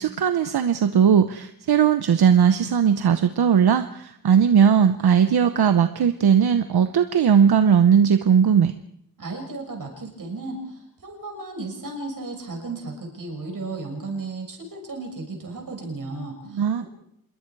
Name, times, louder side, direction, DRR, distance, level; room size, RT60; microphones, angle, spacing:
voice 1, 0.0-8.7 16.5-16.8, right 7 dB, 85° right, 9 dB, 0.9 m, -18 dB
voice 2, 9.2-16.8, right 3 dB, 60° right, 2 dB, 6.5 m, -34 dB
27.0 x 22.0 x 4.7 m, 0.74 s
wide cardioid pair, 145°, 37 cm